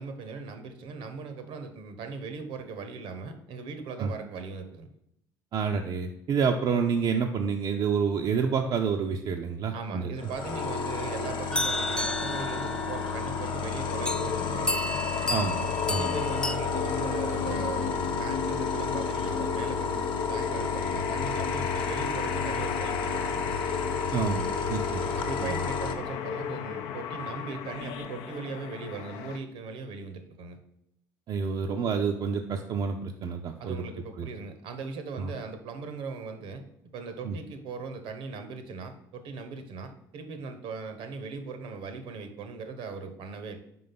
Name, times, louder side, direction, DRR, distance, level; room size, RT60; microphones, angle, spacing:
voice 1, 0.0-4.9 9.7-14.7 15.9-23.6 25.2-30.6 33.6-36.6 36.9-43.6, right 4 dB, 65° right, 8 dB, 0.9 m, -39 dB
voice 2, 5.5-10.3 15.3-16.1 24.1-25.0 25.4-25.6 31.3-33.8 34.2-34.3 35.2-35.3 37.2-37.4, right 6 dB, 50° right, 3 dB, 0.5 m, -28 dB
sound 1, 10.2-25.9, left 5 dB, 55° left, 0.9 m, -31 dB
sound 2, 11.5-13.2 14.0-14.3 14.7-16.5, left 1 dB, 10° left, 0.3 m, -32 dB
sound 3, 13.8-29.4, left 8 dB, 70° left, 0.5 m, -35 dB
5.0 x 3.9 x 5.8 m, 0.79 s
hypercardioid pair, 60°, 10 cm